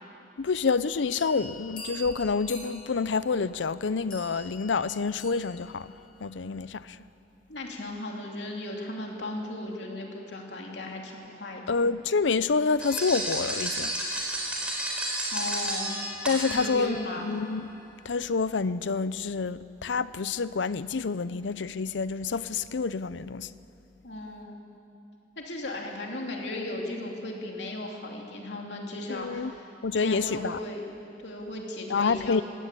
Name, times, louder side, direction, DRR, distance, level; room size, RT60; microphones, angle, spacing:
voice 1, 0.4-5.9 6.2-7.0 11.7-13.9 16.3-17.7 18.0-23.5 29.1-29.5 29.8-30.6 31.9-32.4, left 4 dB, 90° left, 0.6 m, -28 dB
sound 1, 0.8-5.9, left 1 dB, 50° left, 4.2 m, -45 dB
voice 2, 7.5-11.6 15.3-16.0 16.5-17.3 24.0-24.7 25.4-30.8 31.2-32.4, left 1 dB, 70° left, 2.9 m, -36 dB
sound 2, 12.8-17.1, right 1 dB, 5° right, 3.9 m, -32 dB
21.5 x 17.0 x 8.4 m
head